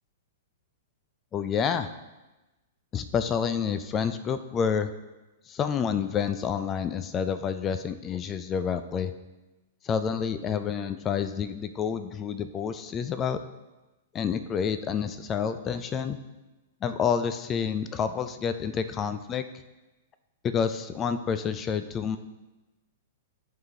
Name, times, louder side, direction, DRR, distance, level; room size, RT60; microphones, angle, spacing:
voice 1, 1.3-1.9 2.9-4.9 5.5-9.1 9.8-13.4 14.1-16.2 16.8-19.4 20.4-22.2, left 7 dB, 25° left, 11 dB, 0.3 m, -28 dB
10.5 x 3.6 x 2.8 m, 1.1 s
figure-of-eight pair, 105°, 0 cm